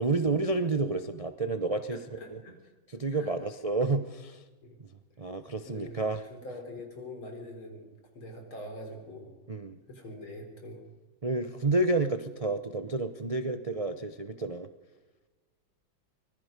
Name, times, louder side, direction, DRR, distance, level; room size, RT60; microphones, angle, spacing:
voice 1, 0.0-2.0 2.9-4.4 5.2-6.2 9.5-9.8 11.2-14.7, right 3 dB, 50° right, 8 dB, 0.4 m, -30 dB
voice 2, 1.9-2.6 3.1-3.3 4.6-4.8 5.6-7.9 8.1-9.3 9.9-10.8, left 1 dB, 85° left, 3 dB, 4.8 m, -44 dB
24.5 x 20.0 x 5.3 m, 1.3 s
omnidirectional pair, 2.2 m